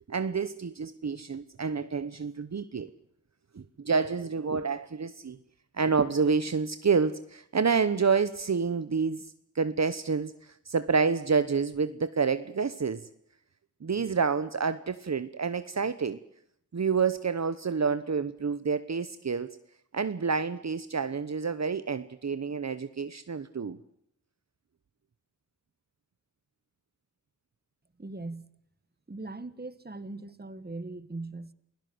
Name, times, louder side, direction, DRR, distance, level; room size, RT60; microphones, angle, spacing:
voice 1, 0.1-2.9 3.5-5.4 5.7-13.1 13.8-16.2 16.7-19.6 19.9-23.8, right 5 dB, 60° right, 1.0 m, -28 dB
voice 2, 28.0-28.5 29.1-31.5, right 2 dB, 30° right, 1.6 m, -40 dB
28.0 x 16.5 x 7.8 m
cardioid pair, 45°, 31 cm